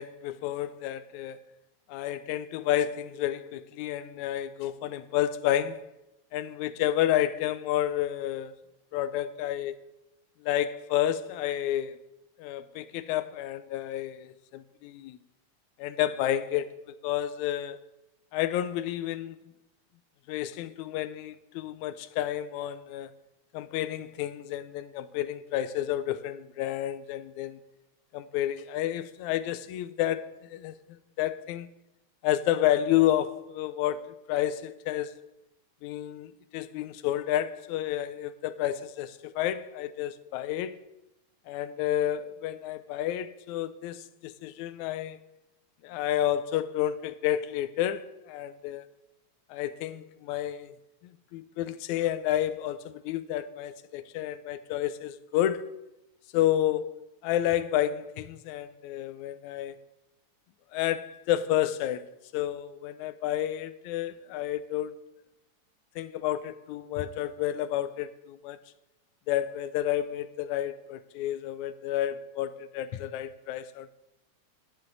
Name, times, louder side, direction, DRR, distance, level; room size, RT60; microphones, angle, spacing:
voice 1, 0.0-1.4 1.9-5.9 6.3-8.6 8.9-9.7 10.4-12.0 12.4-15.2 15.8-16.7 17.0-17.8 18.3-19.4 20.3-23.1 23.5-27.6 28.1-31.7 32.2-35.2 35.8-40.8 41.5-45.2 45.8-48.8 49.5-50.7 51.0-55.7 56.3-57.0 57.2-59.8 60.7-64.9 66.0-68.6 69.3-73.9, left 12 dB, 80° left, 1.9 m, -30 dB
11.0 x 10.0 x 3.9 m
omnidirectional pair, 3.4 m